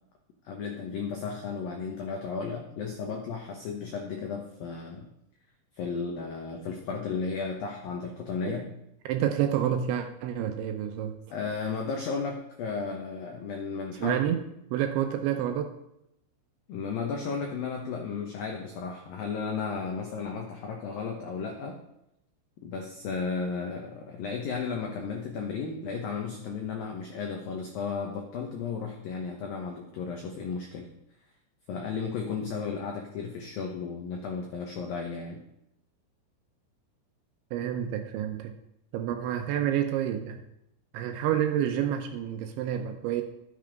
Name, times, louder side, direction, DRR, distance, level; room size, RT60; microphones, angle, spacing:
voice 1, 0.4-5.1 5.8-8.7 11.3-14.2 16.7-21.8 22.6-30.9 31.7-35.4, left 5 dB, 90° left, 2 dB, 2.0 m, -34 dB
voice 2, 9.1-11.2 14.0-14.4 14.7-15.8 37.5-38.6 38.9-40.4 40.9-43.2, right 10 dB, 80° right, 6 dB, 2.8 m, -29 dB
12.5 x 9.6 x 5.2 m, 0.81 s
omnidirectional pair, 5.9 m